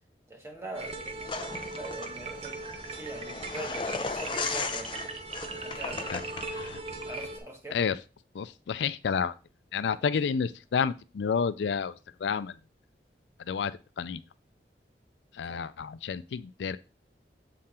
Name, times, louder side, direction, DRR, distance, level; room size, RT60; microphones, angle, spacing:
voice 1, 0.3-5.1 5.5-6.3 7.1-7.8 15.5-15.6, right 1 dB, 15° right, 1.5 m, -42 dB
sound 1, 0.7-7.4, right 3 dB, 35° right, 0.8 m, -39 dB
sound 2, 1.3-6.8, left 4 dB, 30° left, 0.5 m, -37 dB
voice 2, 8.3-9.3 9.7-12.0 12.2-12.6 13.5-14.2 15.3-16.8, left 6 dB, 85° left, 0.4 m, -30 dB
7.6 x 3.8 x 4.3 m
head